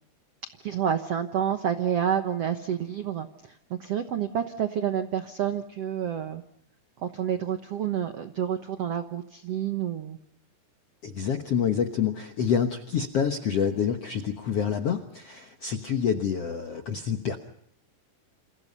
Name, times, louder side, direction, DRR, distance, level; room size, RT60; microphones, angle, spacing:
voice 1, 0.6-6.4 7.0-10.2, right 9 dB, 85° right, 8 dB, 1.3 m, -29 dB
voice 2, 11.0-17.4, left 7 dB, 70° left, 6 dB, 1.4 m, -27 dB
28.5 x 27.5 x 5.6 m, 0.67 s
omnidirectional pair, 4.7 m